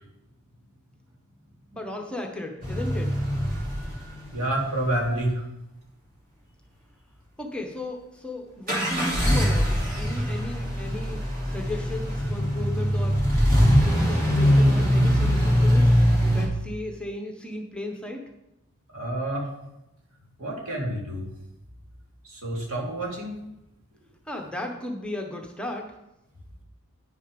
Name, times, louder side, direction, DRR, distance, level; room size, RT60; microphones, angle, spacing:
voice 1, 1.7-3.2 7.4-13.2 13.6-15.9 16.2-18.2 24.3-26.0, left 1 dB, 5° left, 2 dB, 0.8 m, -35 dB
sound 1, 2.6-4.9 8.7-16.5, equal, 40° right, 2.6 m, -22 dB
voice 2, 4.3-5.4 18.9-19.5 20.4-21.3 22.3-23.4, right 1 dB, 75° right, -1 dB, 2.4 m, -28 dB
9.7 x 6.3 x 5.2 m, 0.90 s
head